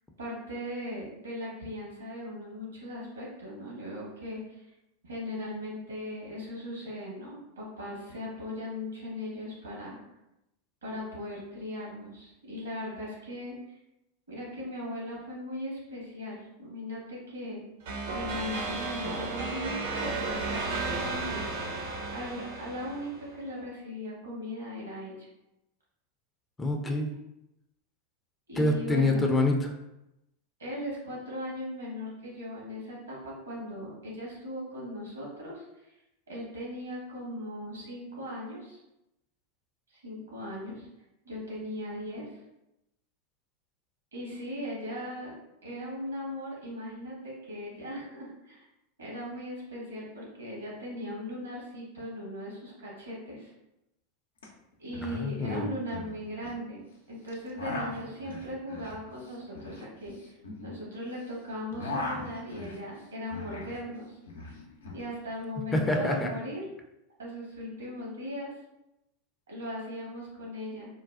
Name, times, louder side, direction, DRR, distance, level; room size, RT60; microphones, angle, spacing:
voice 1, 0.2-4.7 5.0-10.0 10.8-13.8 14.3-17.6 18.1-21.5 22.1-25.3 27.1-27.2 28.5-29.2 30.6-35.6 36.3-38.8 39.9-40.9 41.2-42.4 44.1-48.6 49.0-53.5 54.8-60.3 60.6-64.2 64.9-66.6 67.2-68.5 69.5-70.9, left 1 dB, 80° right, -4 dB, 1.3 m, -38 dB
sound 1, 17.9-23.3, right 3 dB, 65° right, 0.7 m, -34 dB
voice 2, 26.6-27.1 28.6-29.7 55.0-55.7 65.7-66.3, left 2 dB, 15° left, 2 dB, 0.4 m, -26 dB
sound 2, 54.4-54.5 54.7-55.1 55.4-56.6 57.3-61.2 61.5-63.8 64.1-65.0, left 2 dB, 80° left, 0.5 m, -39 dB
3.9 x 2.2 x 2.4 m, 0.89 s
figure-of-eight pair, 90°, 0 cm